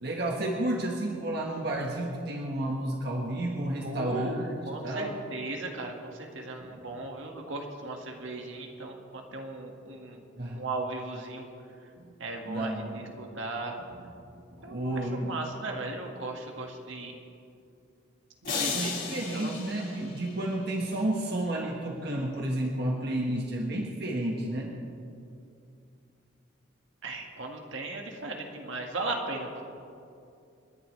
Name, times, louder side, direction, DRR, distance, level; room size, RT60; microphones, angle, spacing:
voice 1, 0.0-4.6 4.8-5.2 6.6-6.8 10.4-10.6 12.0-12.1 12.4-13.2 13.9-14.1 14.5-15.3 18.7-24.7, right 1 dB, 55° right, -1 dB, 1.4 m, -31 dB
voice 2, 3.8-4.4 4.7-10.2 10.5-11.5 12.2-13.8 14.6-17.1 18.4-19.5 27.0-29.6, right 2 dB, 75° right, 1 dB, 1.8 m, -37 dB
sound 1, 18.4-20.7, left 5 dB, 50° left, 4.1 m, -35 dB
30.0 x 11.0 x 3.3 m, 2.5 s
head